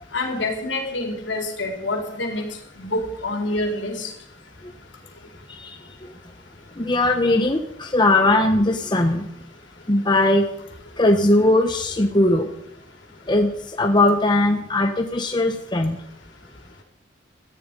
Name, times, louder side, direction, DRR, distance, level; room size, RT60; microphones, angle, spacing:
voice 1, 0.1-2.5 2.8-4.1, left 2 dB, 70° left, 3 dB, 3.9 m, -27 dB
voice 2, 6.8-9.3 9.9-10.4 11.0-12.5 13.3-13.5 13.8-16.0, left 2 dB, 25° left, 4 dB, 1.0 m, -19 dB
19.0 x 13.5 x 5.3 m, 0.76 s
head